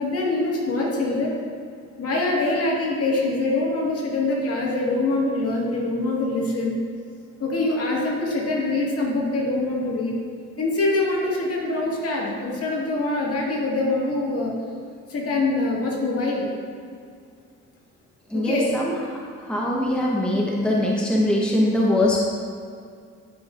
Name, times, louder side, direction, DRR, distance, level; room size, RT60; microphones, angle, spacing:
voice 1, 0.0-1.4 2.0-6.8 7.4-10.1 10.6-14.5 15.1-16.4 18.3-18.7, left 2 dB, 50° left, -3 dB, 1.8 m, -24 dB
voice 2, 18.3-18.9 19.5-22.2, left 1 dB, 5° left, -3 dB, 1.0 m, -22 dB
11.0 x 5.2 x 2.5 m, 2.2 s
cardioid pair, 90°, 30 cm